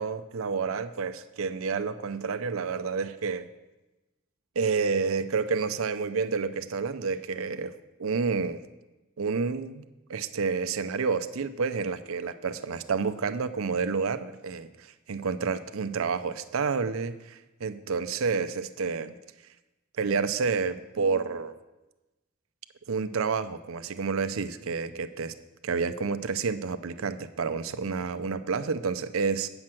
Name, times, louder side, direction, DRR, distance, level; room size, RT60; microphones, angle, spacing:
voice 1, 0.0-3.5 4.6-7.7 8.0-8.6 9.2-9.8 10.1-19.2 20.0-21.5 22.9-25.3 25.6-29.5, right 5 dB, 90° right, 11 dB, 0.5 m, -29 dB
8.7 x 5.9 x 7.5 m, 1.0 s
head